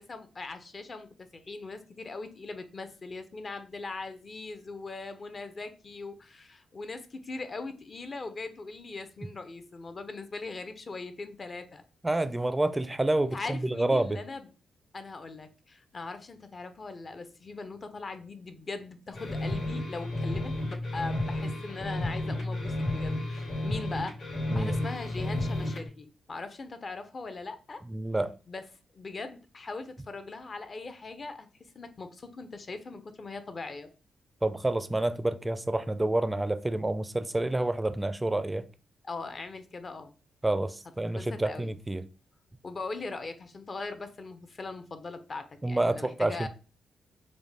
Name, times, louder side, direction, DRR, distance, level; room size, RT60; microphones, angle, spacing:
voice 1, 0.0-11.8 13.3-14.5 14.9-24.2 24.5-27.8 28.5-28.6 28.9-33.9 39.0-40.1 41.1-41.7 42.6-46.5, left 3 dB, 40° left, 0.6 m, -40 dB
voice 2, 12.0-14.2 24.5-24.8 27.9-28.3 34.4-38.7 40.4-42.1 45.6-46.5, right 2 dB, 15° right, 0.4 m, -28 dB
sound 1, 19.1-25.9, left 1 dB, 65° left, 2.2 m, -32 dB
5.0 x 2.2 x 3.3 m
cardioid pair, 80°, 0 cm